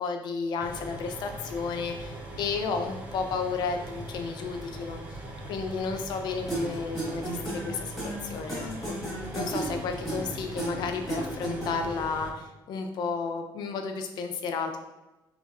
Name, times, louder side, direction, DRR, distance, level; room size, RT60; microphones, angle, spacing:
voice 1, 0.0-5.2 5.5-14.8, left 5 dB, 55° left, 5 dB, 0.4 m, -33 dB
sound 1, 0.6-12.3, right 1 dB, 15° right, 0.5 m, -41 dB
sound 2, 6.5-12.0, right 2 dB, ahead, 1.3 m, -34 dB
4.1 x 3.0 x 2.4 m, 1.0 s
cardioid pair, 165°, 9 cm